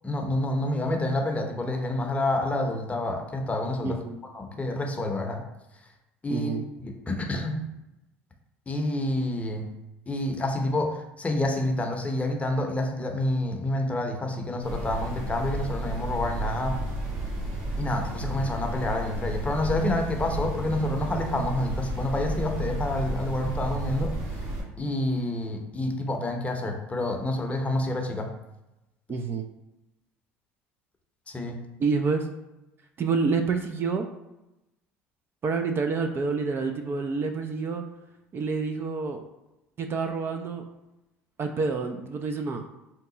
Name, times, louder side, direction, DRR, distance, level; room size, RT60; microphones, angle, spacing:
voice 1, 0.0-4.0 4.3-5.4 6.2-6.5 6.8-7.6 8.7-9.7 10.1-16.8 17.8-24.1 24.8-28.3 31.3-31.6, left 1 dB, 20° left, 3 dB, 0.7 m, -28 dB
voice 2, 3.8-4.2 6.3-6.6 29.1-29.5 31.8-32.3 33.0-34.0 35.4-37.8 38.3-39.2 39.8-40.6 41.4-42.6, right 4 dB, 40° right, 5 dB, 0.4 m, -28 dB
sound 1, 14.6-24.6, right 1 dB, 65° right, 1.1 m, -32 dB
2.8 x 2.2 x 3.8 m, 0.94 s
hypercardioid pair, 80°, 6 cm